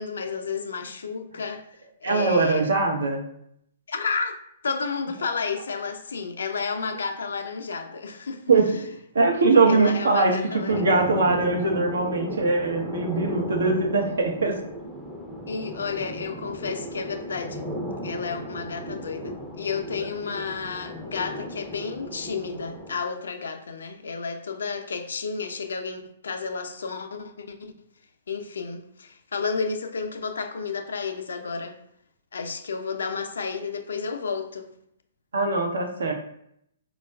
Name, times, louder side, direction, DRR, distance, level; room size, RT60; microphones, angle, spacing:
voice 1, 0.0-1.7 2.0-2.7 3.9-4.4 4.6-8.4 9.7-10.8 15.5-17.7 18.0-27.7 28.3-31.8 32.3-34.7, left 5 dB, 75° left, 0.4 m, -31 dB
voice 2, 2.0-3.2 8.5-8.9 9.1-14.5 35.3-36.1, right 3 dB, 75° right, 0.7 m, -22 dB
sound 1, 10.7-23.0, equal, ahead, 0.5 m, -35 dB
4.4 x 2.3 x 2.2 m
figure-of-eight pair, 120°, 0 cm